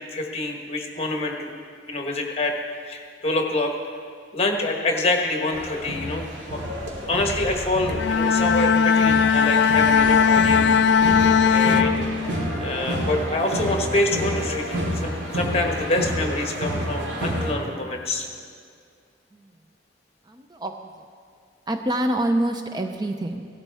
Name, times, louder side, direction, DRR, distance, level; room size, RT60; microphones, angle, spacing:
voice 1, 0.0-1.5 1.9-2.5 2.9-3.7 4.3-6.6 7.1-10.6 11.5-12.0 12.6-18.3, left 2 dB, 35° left, 2 dB, 1.2 m, -26 dB
sound 1, 5.5-17.5, equal, 75° right, 2.5 m, -29 dB
Bowed string instrument, 7.9-12.6, left 6 dB, 65° left, 0.4 m, -19 dB
voice 2, 20.3-20.7 21.7-23.5, right 1 dB, 20° right, 5 dB, 0.5 m, -26 dB
16.5 x 12.5 x 3.5 m, 2.2 s
head